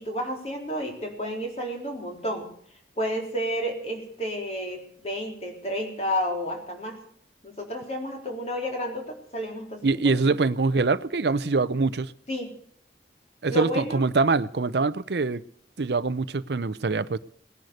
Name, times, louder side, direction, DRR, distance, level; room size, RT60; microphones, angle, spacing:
voice 1, 0.0-2.5 3.0-7.0 7.4-10.2 12.3-12.5 13.5-14.0, equal, 35° left, 3.8 m, -31 dB
voice 2, 9.8-12.1 13.4-15.4 15.8-17.2, right 3 dB, 70° right, 0.6 m, -24 dB
19.0 x 10.5 x 6.4 m
head